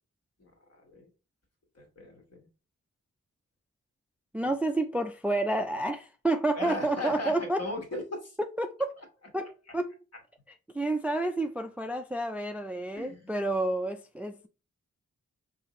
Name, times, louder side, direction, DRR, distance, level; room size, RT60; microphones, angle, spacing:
voice 1, 0.4-1.1 1.8-2.5 4.4-4.5 6.5-8.4 12.9-13.3, left 2 dB, 50° left, 1.4 m, -38 dB
voice 2, 4.3-7.6 8.4-9.0 9.3-9.9 10.7-14.5, right 2 dB, 5° right, 0.3 m, -30 dB
4.9 x 2.7 x 3.1 m
cardioid pair, 55°, 32 cm